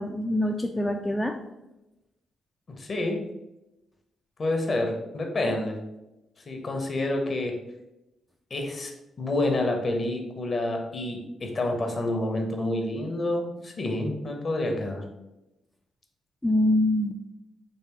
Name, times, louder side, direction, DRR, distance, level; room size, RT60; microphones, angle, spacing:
voice 1, 0.0-1.4 16.4-17.2, left 1 dB, 15° left, 3 dB, 0.3 m, -24 dB
voice 2, 2.7-3.2 4.4-5.8 6.5-7.6 8.5-8.9 9.2-15.0, left 2 dB, 45° left, 3 dB, 0.8 m, -28 dB
3.2 x 3.1 x 3.0 m, 0.95 s
hypercardioid pair, 40°, 0 cm